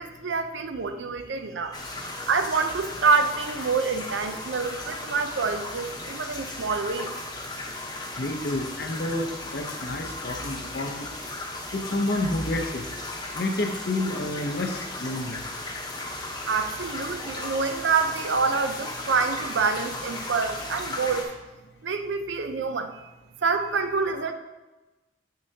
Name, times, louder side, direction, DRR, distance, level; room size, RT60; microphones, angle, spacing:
voice 1, 0.0-1.8 2.3-7.1 16.5-21.3 21.8-23.1 23.4-24.3, right 4 dB, 80° right, 8 dB, 0.6 m, -27 dB
sound 1, 1.7-21.2, left 2 dB, 20° left, 0.9 m, -36 dB
voice 2, 8.2-11.1 11.7-12.8 13.3-15.4, left 1 dB, 55° left, 5 dB, 0.7 m, -29 dB
7.7 x 6.6 x 2.8 m, 1.1 s
head